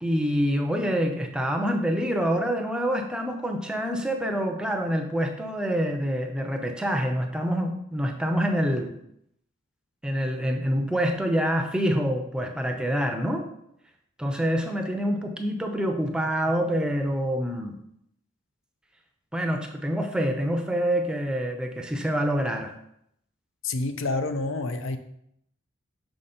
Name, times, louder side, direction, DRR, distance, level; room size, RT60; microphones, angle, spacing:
voice 1, 0.0-8.9 10.0-13.4 14.2-17.8 19.3-22.7, equal, 5° right, 4 dB, 0.5 m, -26 dB
voice 2, 23.6-25.0, left 2 dB, 80° left, 8 dB, 0.6 m, -28 dB
6.2 x 5.0 x 4.3 m, 0.74 s
head